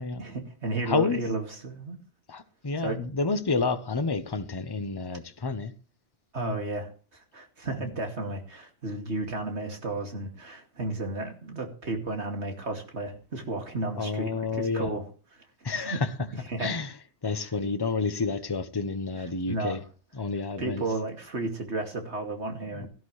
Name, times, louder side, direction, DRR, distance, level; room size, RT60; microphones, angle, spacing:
voice 1, 0.0-2.0 2.8-3.0 6.3-15.0 15.3-15.4 15.7-16.0 16.5-16.8 17.4-17.5 19.5-19.8 20.6-22.9, right 2 dB, 70° right, 2.8 m, -33 dB
voice 2, 0.9-1.2 2.3-5.7 7.8-7.9 13.9-14.9 15.6-16.1 16.6-16.9 17.2-19.8 20.1-20.8 22.7-22.9, left 4 dB, 20° left, 0.9 m, -29 dB
17.5 x 12.5 x 3.3 m
omnidirectional pair, 1.2 m